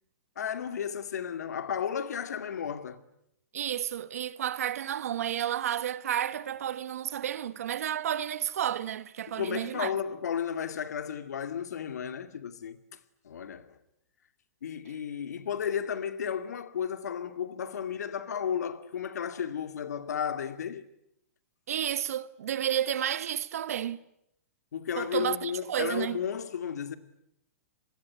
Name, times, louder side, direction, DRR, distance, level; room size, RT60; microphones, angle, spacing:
voice 1, 0.4-3.0 9.4-12.8 13.2-13.7 14.6-20.8 24.7-27.0, left 8 dB, 90° left, 2.3 m, -33 dB
voice 2, 3.5-9.9 21.7-24.0 25.0-26.2, right 10 dB, 65° right, 1.3 m, -31 dB
27.5 x 21.0 x 9.5 m
hypercardioid pair, 170°, 9 cm